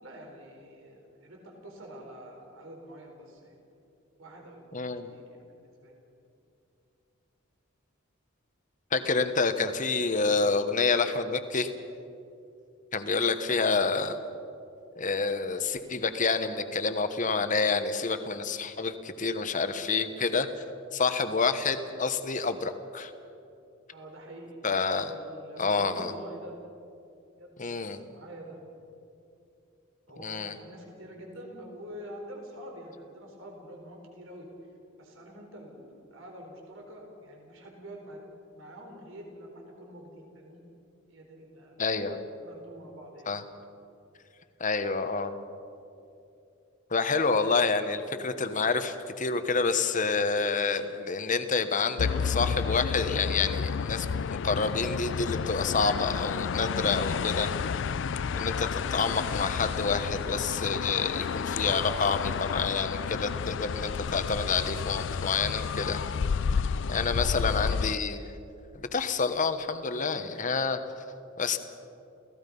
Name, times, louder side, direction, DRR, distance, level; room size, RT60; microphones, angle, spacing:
voice 1, 0.0-3.5 4.2-5.9 23.9-24.6 25.0-26.6 27.4-28.6 30.1-34.5 35.0-38.2 38.5-40.6 41.1-41.9 42.4-43.3 58.2-58.7 59.1-59.4 66.9-67.4, equal, 70° right, 1 dB, 4.2 m, -46 dB
voice 2, 4.7-5.1 8.9-11.7 12.9-14.2 14.9-20.5 20.9-23.1 24.6-25.1 25.6-26.1 27.6-28.0 30.2-30.5 41.8-42.2 43.3-43.4 44.6-45.4 46.9-57.5 58.3-66.0 66.9-68.2 68.7-70.8 71.4-71.6, left 4 dB, 40° left, 9 dB, 1.2 m, -28 dB
sound 1, 52.0-68.0, left 6 dB, 60° left, 0.4 m, -31 dB
29.0 x 17.0 x 5.5 m, 2.7 s
head